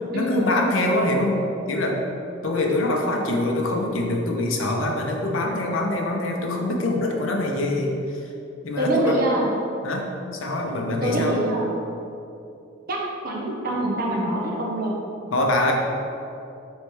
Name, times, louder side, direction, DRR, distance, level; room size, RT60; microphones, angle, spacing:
voice 1, 0.0-2.0 2.4-8.3 8.6-9.2 9.8-11.4 15.3-15.7, left 1 dB, 75° left, 1 dB, 0.6 m, -24 dB
voice 2, 8.8-9.5 11.0-11.7 12.9-15.0, right 1 dB, 45° right, -2 dB, 0.6 m, -24 dB
3.2 x 3.2 x 4.5 m, 2.7 s
head